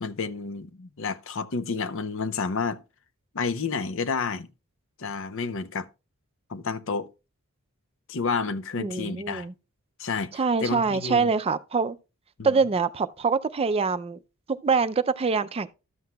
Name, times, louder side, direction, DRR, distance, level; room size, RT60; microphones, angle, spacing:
voice 1, 0.0-2.8 3.3-4.5 5.0-5.9 6.5-7.1 8.1-9.5 10.0-11.3 12.4-12.5, left 4 dB, 65° left, 0.7 m, -30 dB
voice 2, 8.8-9.5 10.3-12.0 12.4-14.2 14.5-15.7, right 5 dB, 30° right, 0.4 m, -24 dB
12.5 x 7.7 x 2.3 m
head